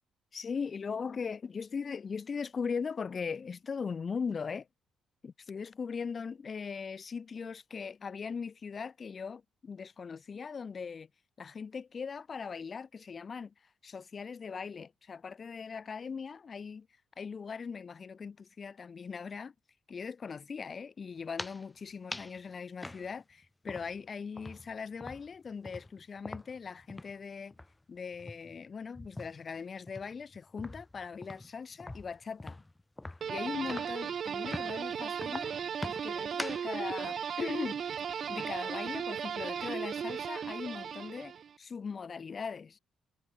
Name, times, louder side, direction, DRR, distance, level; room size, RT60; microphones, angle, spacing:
voice 1, 0.3-4.7 5.2-11.1 11.4-13.5 13.8-16.9 17.2-19.5 19.9-27.5 27.9-32.6 33.3-37.8 38.3-42.8, left 5 dB, 40° left, 2.6 m, -39 dB
sound 1, 21.2-21.7 22.1-22.4 22.8-24.1 24.4-27.2 27.5-27.7 28.1-29.5 29.9-34.1 34.5-34.8 35.2-36.7, left 2 dB, 15° left, 1.2 m, -44 dB
sound 2, 33.2-41.5, right 7 dB, 55° right, 1.7 m, -36 dB
cardioid pair, 90°, 0 cm